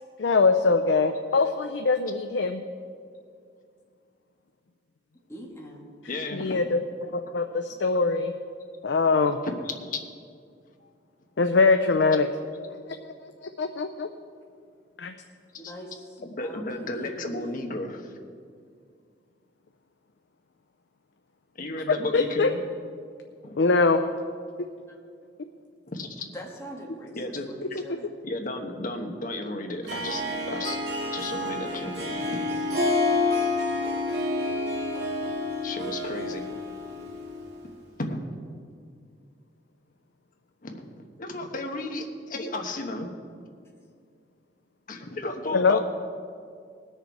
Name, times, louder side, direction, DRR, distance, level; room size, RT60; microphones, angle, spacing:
voice 1, 0.2-2.6 6.3-8.3 8.8-9.4 11.4-12.3 12.9-13.0 13.6-14.1 15.0-15.1 21.9-22.5 23.6-24.0 45.5-45.8, left 4 dB, 75° left, 6 dB, 0.5 m, -22 dB
voice 2, 5.3-5.8 15.5-17.7 26.3-28.1, equal, 15° left, -3 dB, 1.5 m, -43 dB
voice 3, 6.1-6.6 9.4-9.5 9.8-10.0 10.8-10.9 16.2-18.1 21.5-22.6 23.4-23.7 25.9-26.3 27.1-27.5 28.2-30.8 31.1-32.4 35.6-36.4 38.0-38.4 40.6-40.9 41.2-43.2 44.9-45.8, left 2 dB, 50° left, 3 dB, 1.1 m, -33 dB
Harp, 29.8-37.6, left 2 dB, 65° right, 2.3 m, -28 dB
19.5 x 6.6 x 4.6 m, 2.2 s
head